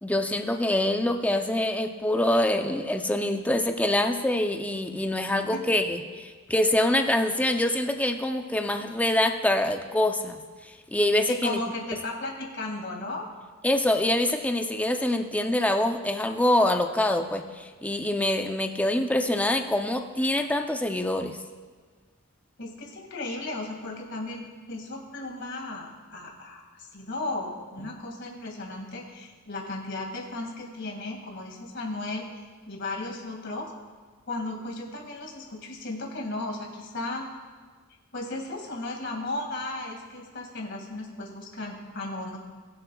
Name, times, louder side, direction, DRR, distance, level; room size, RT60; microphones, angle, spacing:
voice 1, 0.0-11.6 13.6-21.4, left 1 dB, 5° left, 5 dB, 0.5 m, -25 dB
voice 2, 11.3-13.3 22.6-32.3 32.7-33.7 34.3-37.2 38.1-42.4, left 2 dB, 60° left, 0 dB, 2.1 m, -35 dB
21.0 x 7.7 x 2.3 m, 1.5 s
head